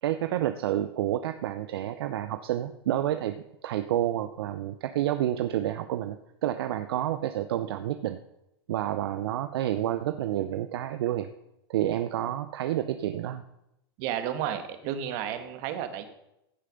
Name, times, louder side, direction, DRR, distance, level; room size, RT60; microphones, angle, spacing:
voice 1, 0.0-8.2 8.7-11.3 11.7-13.4, right 12 dB, 70° right, 9 dB, 0.7 m, -29 dB
voice 2, 14.0-16.1, right 10 dB, 50° right, 9 dB, 1.7 m, -32 dB
15.5 x 6.6 x 5.3 m, 0.84 s
hypercardioid pair, 115°, 13 cm